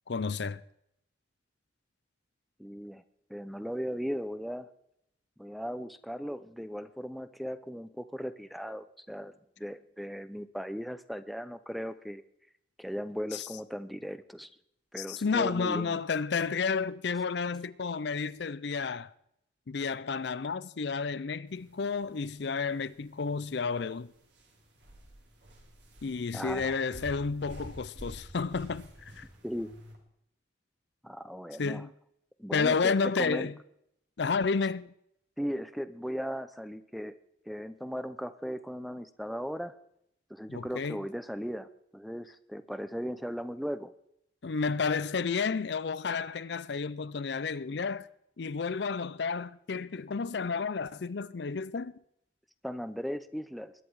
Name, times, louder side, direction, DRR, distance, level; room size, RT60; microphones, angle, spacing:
voice 1, 0.1-0.6 13.3-13.5 15.0-19.1 19.7-24.1 26.0-29.2 31.6-31.9 32.5-33.6 34.2-34.9 40.5-41.0 44.4-48.1 48.4-51.9, left 5 dB, 60° left, 0.5 m, -31 dB
voice 2, 2.6-3.0 3.3-4.7 5.4-9.3 9.6-12.2 12.8-14.5 14.9-16.0 26.3-26.8 29.4-29.7 31.0-31.8 32.4-33.5 35.4-37.1 37.5-39.7 40.3-41.7 41.9-43.9 52.6-53.7, equal, ahead, 0.6 m, -37 dB
sound 1, 21.5-30.0, equal, 65° right, 3.8 m, -49 dB
21.0 x 10.5 x 4.8 m
head